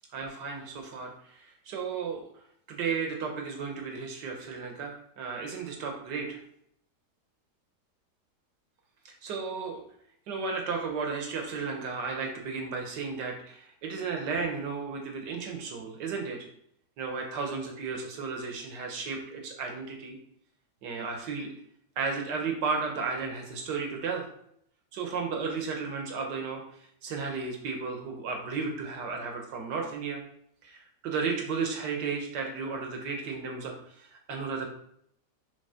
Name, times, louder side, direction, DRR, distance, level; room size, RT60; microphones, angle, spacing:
voice 1, 0.1-2.2 2.7-6.4 9.1-9.8 10.3-16.5 17.0-20.2 20.8-21.5 22.0-24.3 24.9-30.2 30.6-34.7, right 5 dB, 90° right, 2 dB, 1.7 m, -34 dB
7.2 x 3.6 x 5.6 m, 0.70 s
omnidirectional pair, 1.8 m